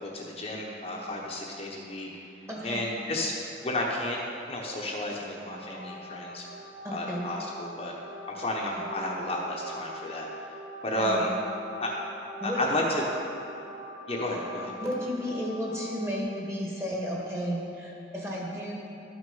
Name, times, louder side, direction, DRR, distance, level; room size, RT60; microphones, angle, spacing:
voice 1, 0.0-2.1 2.6-3.3 3.6-6.4 6.9-7.9 8.3-10.3 10.8-11.3 11.8-11.9 12.4-13.0 14.1-14.7, left 1 dB, 35° left, -2 dB, 0.9 m, -32 dB
voice 2, 2.5-2.9 6.8-7.3 11.0-11.2 12.4-12.6 14.8-18.7, equal, 15° right, -3 dB, 1.5 m, -33 dB
sound 1, 5.5-16.2, left 1 dB, 80° right, 1.1 m, -43 dB
11.5 x 6.2 x 5.5 m, 2.9 s
head